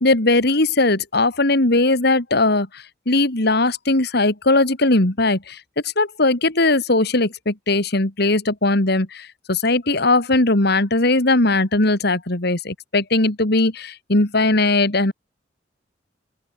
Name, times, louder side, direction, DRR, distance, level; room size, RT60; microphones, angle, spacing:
voice 1, 0.0-5.6 5.8-15.1, left 2 dB, 60° left, 2.7 m, -19 dB
open air
head